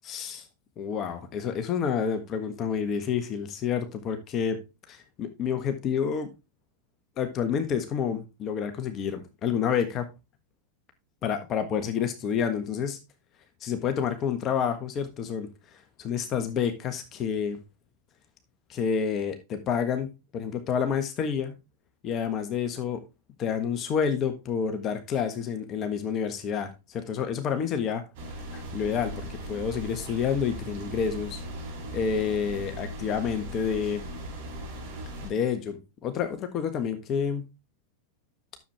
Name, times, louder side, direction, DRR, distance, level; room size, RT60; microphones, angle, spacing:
voice 1, 0.0-0.5 0.8-4.6 4.9-6.3 7.2-10.1 11.2-13.0 13.6-17.6 18.7-21.6 22.0-23.0 23.4-28.0 28.3-31.4 31.9-34.0 35.2-37.5, left 7 dB, 35° left, 8 dB, 1.4 m, -29 dB
sound 1, 28.1-35.3, equal, 60° right, 5.4 m, -38 dB
10.0 x 7.2 x 3.4 m, 0.26 s
hypercardioid pair, 95°, 0 cm